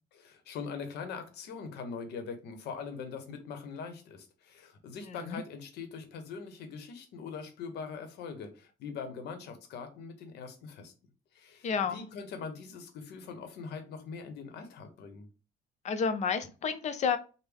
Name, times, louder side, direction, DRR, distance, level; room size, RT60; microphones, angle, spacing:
voice 1, 0.1-10.9 11.3-15.3, left 5 dB, 75° left, 0.9 m, -42 dB
voice 2, 11.6-12.0 15.8-17.2, left 6 dB, 45° left, 0.5 m, -30 dB
3.4 x 2.2 x 3.5 m
cardioid pair, 110°, 17 cm